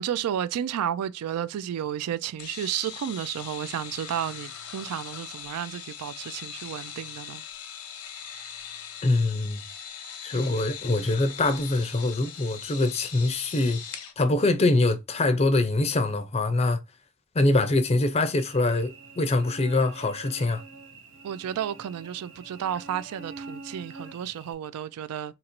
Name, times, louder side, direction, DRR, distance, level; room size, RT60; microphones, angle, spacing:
voice 1, 0.0-7.4 10.3-10.6 21.2-25.4, right 9 dB, 85° right, 0.3 m, -32 dB
sound 1, 2.4-14.1, left 8 dB, 85° left, 0.7 m, -40 dB
voice 2, 9.0-9.6 10.2-13.8 14.2-16.8 17.4-20.6, left 2 dB, 25° left, 0.4 m, -24 dB
Cricket / Buzz, 18.4-24.5, right 3 dB, 55° right, 0.7 m, -45 dB
2.8 x 2.6 x 4.3 m
head